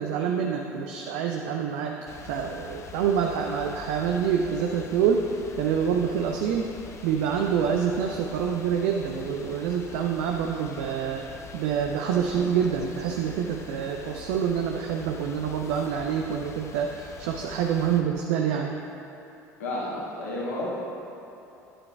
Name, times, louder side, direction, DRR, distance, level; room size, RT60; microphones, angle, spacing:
voice 1, 0.0-2.0 2.2-5.2 5.6-6.7 7.0-11.3 11.5-18.7, right 7 dB, 60° right, 3 dB, 0.5 m, -26 dB
sound 1, 2.1-18.0, left 4 dB, 35° left, 0.7 m, -45 dB
sound 2, 11.4-15.8 16.0-16.1 16.4-16.5, equal, 5° right, 1.4 m, -49 dB
voice 2, 19.6-20.7, left 1 dB, 70° left, -7 dB, 2.0 m, -31 dB
10.5 x 9.8 x 2.3 m, 3.0 s
figure-of-eight pair, 60°, 9 cm